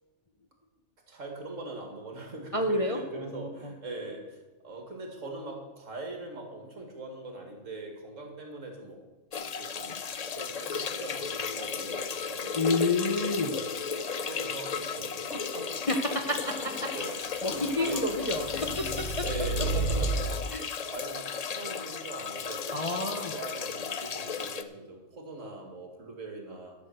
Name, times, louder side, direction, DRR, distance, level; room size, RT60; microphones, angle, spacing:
voice 1, 1.1-9.0 9.6-10.0 10.4-12.7 13.3-15.9 16.9-17.2 17.4-18.0 19.2-20.5 20.8-26.7, right 2 dB, 60° right, 3 dB, 2.6 m, -41 dB
voice 2, 2.5-3.5 12.5-13.5 15.9-16.0 16.3-16.4 16.8-16.9 17.4-18.5 18.8-19.2 20.5-20.6 22.7-23.3, left 2 dB, 30° left, 3 dB, 0.8 m, -29 dB
sound 1, 9.3-24.6, left 6 dB, 60° left, 0.4 m, -35 dB
sound 2, 16.3-20.3, right 3 dB, 90° left, 4.3 m, -33 dB
12.0 x 6.1 x 8.0 m, 1.1 s
omnidirectional pair, 1.5 m